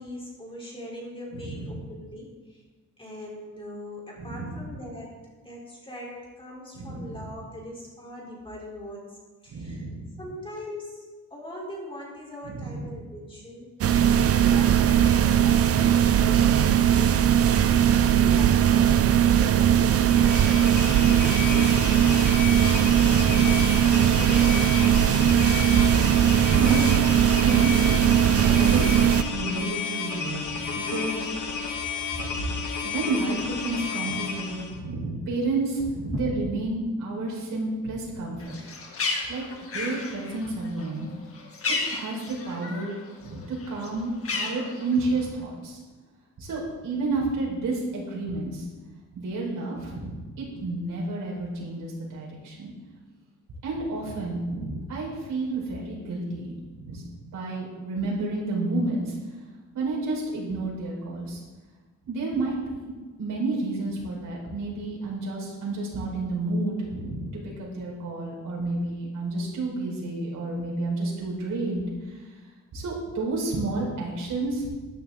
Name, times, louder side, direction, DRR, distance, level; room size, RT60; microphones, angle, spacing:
voice 1, 0.0-2.6 3.0-5.1 5.4-9.2 9.4-9.9 10.2-11.0 11.3-14.0 14.3-17.8 18.0-22.5 22.9-23.6 24.1-24.7 25.2-25.8 32.1-32.5 36.1-36.2, equal, 15° left, -4 dB, 3.8 m, -40 dB
voice 2, 1.3-1.8 4.2-4.6 6.7-7.2 9.5-10.1 12.4-13.0 23.0-24.0 26.6-27.0 27.4-31.5 32.2-32.5 32.8-39.0 39.3-39.5 39.7-41.1 41.7-43.0 43.2-45.8 46.4-48.7 49.1-52.7 53.6-57.0 57.3-59.2 59.7-61.4 62.1-62.7 63.2-67.3 67.6-72.2 72.7-74.7, right 2 dB, 75° right, -3 dB, 4.7 m, -31 dB
sound 1, 13.8-29.2, right 9 dB, 45° right, 0.6 m, -19 dB
sound 2, 20.0-34.8, left 6 dB, 65° left, 1.9 m, -32 dB
Bird, 38.4-43.0 43.3-45.2, left 3 dB, 45° left, 1.9 m, -33 dB
13.0 x 12.5 x 3.8 m, 1.3 s
wide cardioid pair, 145°, 32 cm